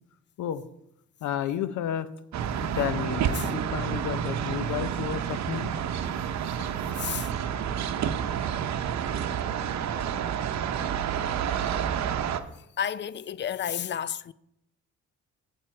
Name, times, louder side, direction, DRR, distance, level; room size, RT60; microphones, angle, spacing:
voice 1, 1.2-2.1 2.6-5.8, left 10 dB, 75° left, 0.7 m, -31 dB
sound 1, 2.3-12.4, right 8 dB, 65° right, 0.8 m, -29 dB
voice 2, 6.4-7.3 12.8-14.3, left 8 dB, 40° left, 0.4 m, -32 dB
8.9 x 7.5 x 4.4 m
cardioid pair, 90°, 30 cm